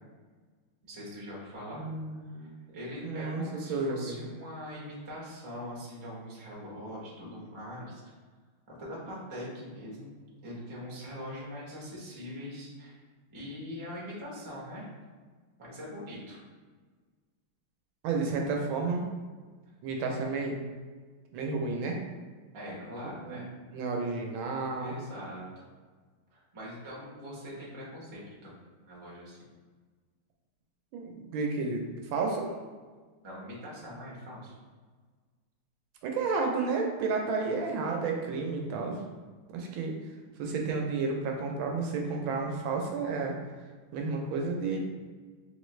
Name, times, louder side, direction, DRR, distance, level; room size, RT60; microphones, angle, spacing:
voice 1, 0.8-1.9 2.2-8.0 8.7-10.1 10.4-13.0 13.3-14.9 15.6-16.4 22.5-23.5 24.8-25.5 26.3-28.5 28.8-29.4 33.2-34.6, equal, 35° right, -5 dB, 0.4 m, -42 dB
voice 2, 1.7-3.4 3.7-4.3 18.0-19.0 19.8-20.6 21.3-22.0 23.2-23.4 23.7-24.9 30.9-32.5 36.0-39.0 39.5-40.0 40.4-43.3 43.9-44.8, right 4 dB, 75° right, 1 dB, 1.3 m, -31 dB
3.5 x 3.1 x 3.1 m, 1.5 s
omnidirectional pair, 2.3 m